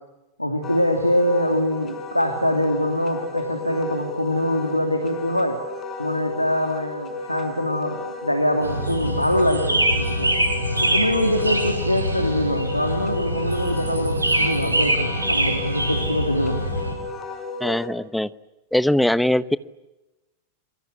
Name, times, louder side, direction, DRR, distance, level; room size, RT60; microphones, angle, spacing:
voice 1, 0.4-5.6 6.0-10.3 10.8-16.6, equal, 90° left, 6 dB, 2.8 m, -24 dB
Wind instrument woodwind instrument, 0.6-17.9, left 3 dB, 25° left, 5.0 m, -34 dB
sound 1, 8.6-16.9, right 1 dB, 80° right, 5.6 m, -24 dB
voice 2, 17.6-18.3 18.7-19.6, left 1 dB, 5° left, 17 dB, 1.0 m, -21 dB
27.5 x 24.0 x 8.5 m, 0.97 s
figure-of-eight pair, 90°, 0 cm